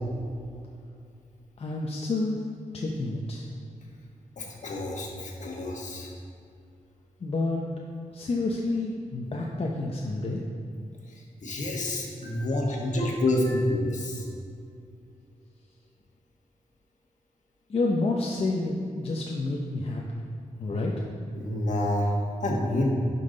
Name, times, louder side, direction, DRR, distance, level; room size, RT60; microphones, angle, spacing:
voice 1, 1.6-2.4 2.7-3.5 7.2-7.7 8.1-10.4 12.2-13.5 17.7-20.3 20.6-21.1, left 2 dB, 50° left, -1 dB, 0.7 m, -30 dB
voice 2, 4.4-6.1 11.2-14.3 21.3-22.9, left 1 dB, 65° left, -1 dB, 1.4 m, -28 dB
10.5 x 5.6 x 3.9 m, 2.4 s
wide cardioid pair, 115°, 13 cm